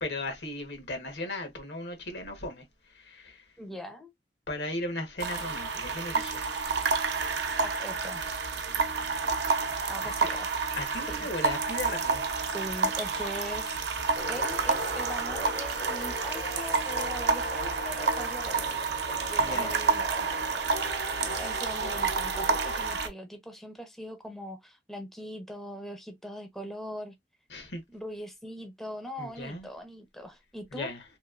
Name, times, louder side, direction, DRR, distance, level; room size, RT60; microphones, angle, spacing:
voice 1, 0.0-2.6 2.9-3.4 4.5-6.6 10.0-10.4 10.7-12.3 19.4-19.8 27.5-27.8 29.2-29.7 30.7-31.0, left 2 dB, 75° left, 1.0 m, -36 dB
voice 2, 3.6-4.1 7.6-8.2 9.9-10.5 11.1-11.3 12.4-13.8 14.3-18.6 19.3-20.3 21.2-27.1 27.9-30.9, equal, ahead, 0.5 m, -41 dB
sound 1, 5.2-23.1, right 4 dB, 80° right, 0.6 m, -29 dB
sound 2, 14.2-22.9, left 1 dB, 40° left, 0.6 m, -40 dB
2.9 x 2.7 x 2.3 m
head